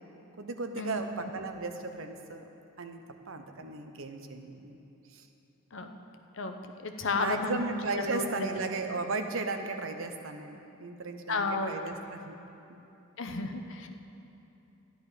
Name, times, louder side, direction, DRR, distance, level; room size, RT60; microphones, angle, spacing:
voice 1, 0.4-2.5 2.8-3.0 3.3-4.8 5.1-5.3 7.1-12.4 12.7-12.8, right 3 dB, 70° right, 6 dB, 0.9 m, -36 dB
voice 2, 6.8-7.6 7.9-8.2 11.3-11.7 13.2-13.9, left 3 dB, 65° left, 5 dB, 0.9 m, -32 dB
13.0 x 10.5 x 5.0 m, 2.8 s
head